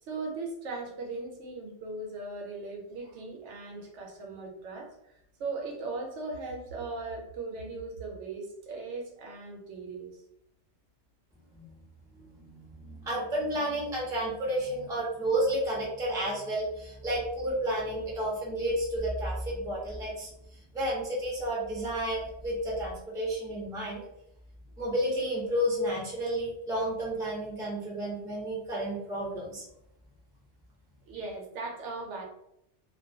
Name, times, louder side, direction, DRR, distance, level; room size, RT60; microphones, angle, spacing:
voice 1, 0.0-5.1 5.4-10.2 31.1-32.2, right 3 dB, 80° right, 1 dB, 0.9 m, -38 dB
voice 2, 12.1-24.0 24.8-29.6, right 1 dB, 5° right, -4 dB, 0.4 m, -31 dB
2.2 x 2.2 x 2.5 m, 0.78 s
omnidirectional pair, 1.2 m